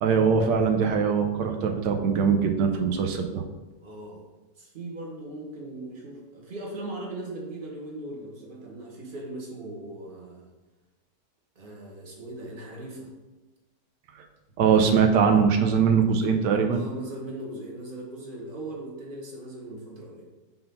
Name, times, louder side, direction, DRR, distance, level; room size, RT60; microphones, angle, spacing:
voice 1, 0.0-3.4 14.6-16.8, right 6 dB, 85° right, 4 dB, 1.3 m, -22 dB
voice 2, 3.8-4.2 4.6-10.5 11.5-13.1 16.7-20.2, right 2 dB, 30° right, -2 dB, 1.5 m, -39 dB
5.9 x 3.9 x 5.4 m, 1.1 s
omnidirectional pair, 1.8 m